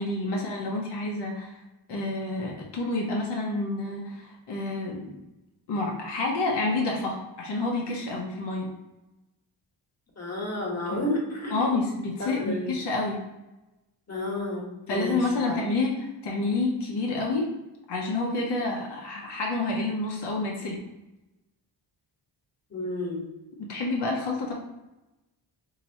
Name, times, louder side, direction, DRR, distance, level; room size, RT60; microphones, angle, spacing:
voice 1, 0.0-1.6 1.9-5.1 5.7-8.7 10.9-11.0 11.5-13.2 14.9-17.5 17.9-20.8 23.6-24.5, left 2 dB, 65° left, -1 dB, 0.9 m, -29 dB
voice 2, 10.2-11.8 12.2-12.7 14.1-15.2 15.5-15.6 22.7-23.3, left 1 dB, 35° left, -3 dB, 1.3 m, -31 dB
4.2 x 2.9 x 2.9 m, 1.0 s
cardioid pair, 110°, 45 cm